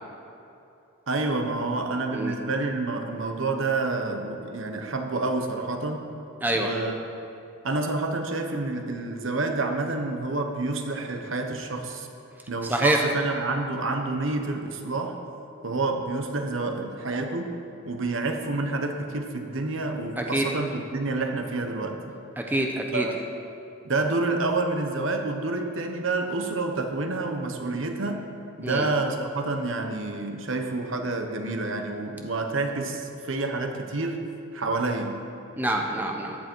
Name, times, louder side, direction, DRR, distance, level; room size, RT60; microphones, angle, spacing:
voice 1, 1.1-6.1 6.5-7.0 7.6-12.1 12.5-15.2 15.6-17.5 17.9-22.1 22.9-23.2 23.8-28.3 28.6-34.2 34.5-35.2, right 3 dB, 70° right, 4 dB, 1.2 m, -28 dB
voice 2, 6.4-6.7 12.7-13.0 20.3-20.4 22.4-23.1 28.6-28.9 35.6-36.4, right 1 dB, 10° right, 1 dB, 0.9 m, -25 dB
14.5 x 10.5 x 4.6 m, 2.8 s
head